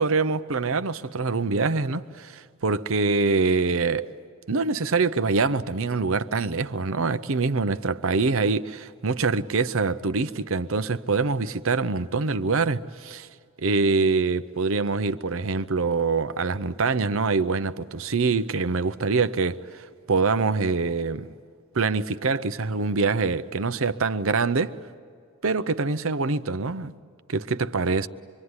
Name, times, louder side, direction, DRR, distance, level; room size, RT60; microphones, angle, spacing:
voice 1, 0.0-4.1 4.5-13.3 13.6-21.3 21.7-24.8 25.4-26.9 27.3-28.1, right 4 dB, 65° right, 0.7 m, -25 dB
26.0 x 23.5 x 9.7 m
head